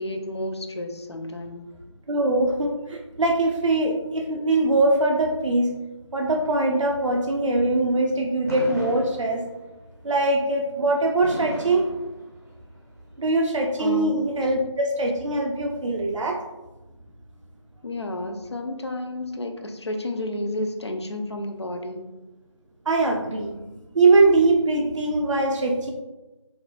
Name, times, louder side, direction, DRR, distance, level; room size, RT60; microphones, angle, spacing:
voice 1, 0.0-1.7 13.8-14.1 17.8-22.1, left 1 dB, 60° left, 4 dB, 0.4 m, -31 dB
voice 2, 2.1-5.7 6.1-9.4 10.0-11.8 13.2-16.4 22.9-23.5 23.9-25.9, right 2 dB, 75° right, 1 dB, 0.4 m, -22 dB
Fireworks, 8.5-9.8 11.2-12.8, equal, 30° right, 0.6 m, -35 dB
3.0 x 2.4 x 2.3 m, 1.1 s
figure-of-eight pair, 175°, 16 cm